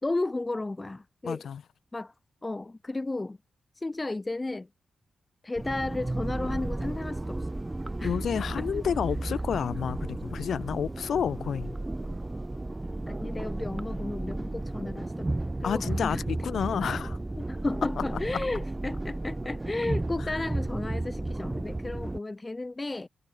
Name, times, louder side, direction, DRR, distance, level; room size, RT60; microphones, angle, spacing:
voice 1, 0.0-1.4 1.9-2.1 2.4-3.4 3.8-4.7 5.4-7.5 8.0-8.2 8.6-8.7 13.1-15.3 15.6-16.2 17.5-23.1, left 2 dB, 30° left, 2.0 m, -33 dB
voice 2, 1.2-1.6 8.0-11.8 15.6-17.2 20.3-20.4, left 8 dB, 70° left, 1.7 m, -30 dB
sound 1, 5.6-22.2, right 2 dB, 25° right, 0.9 m, -33 dB
supercardioid pair, 40°, 0 cm